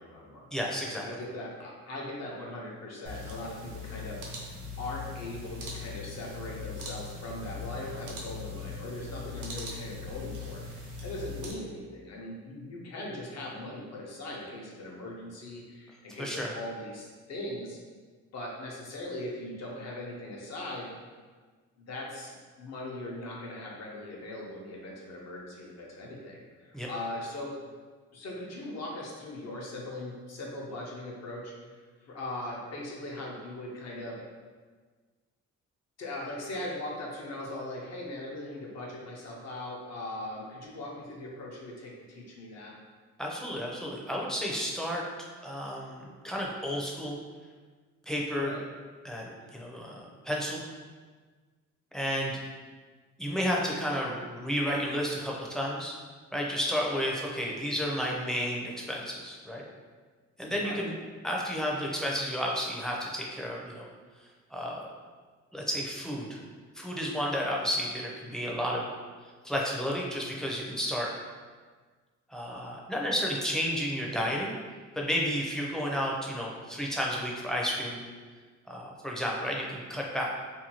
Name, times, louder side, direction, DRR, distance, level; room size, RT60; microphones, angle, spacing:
voice 1, 0.0-0.6 1.0-17.8 18.3-20.9 21.8-27.5 28.1-34.2 36.0-42.7 48.4-48.6 49.3-49.5 60.4-60.9, left 1 dB, 60° left, -3 dB, 0.8 m, -40 dB
voice 2, 0.5-1.1 16.2-16.5 26.7-26.9 43.2-45.0 45.4-47.2 48.1-48.5 49.0-50.6 51.9-52.3 53.2-56.0 56.3-59.6 60.4-60.9 61.2-63.9 64.5-64.9 65.5-66.4 66.8-68.8 69.4-71.1 72.3-74.5 75.0-78.0 78.7-80.3, equal, ahead, -2 dB, 0.5 m, -32 dB
sound 1, 3.0-11.5, left 4 dB, 80° right, 0.7 m, -40 dB
2.7 x 2.2 x 2.9 m, 1.5 s
cardioid pair, 90°, 30 cm